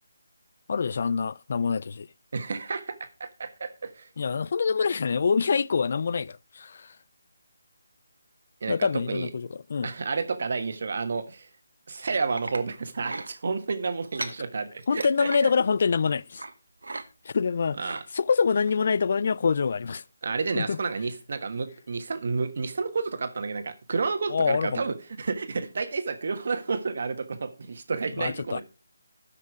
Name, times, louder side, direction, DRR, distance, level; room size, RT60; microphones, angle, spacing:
voice 1, 0.7-2.1 4.2-7.0 8.7-9.9 14.2-14.3 14.9-16.4 17.2-20.0 20.6-20.8 24.3-24.9 28.1-28.6, left 5 dB, 50° left, 0.4 m, -26 dB
voice 2, 2.3-4.1 8.6-9.3 9.8-11.5 11.9-15.3 17.8-18.0 20.2-28.6, right 4 dB, 55° right, 1.4 m, -30 dB
sound 1, 11.9-12.6 13.0-13.3 14.0-14.4 14.8-15.4 16.4-16.5 16.8-17.0 17.4-18.0 18.6-18.8 19.2-19.3, right 3 dB, 80° right, 1.2 m, -37 dB
12.5 x 5.9 x 4.7 m
figure-of-eight pair, 160°, 0 cm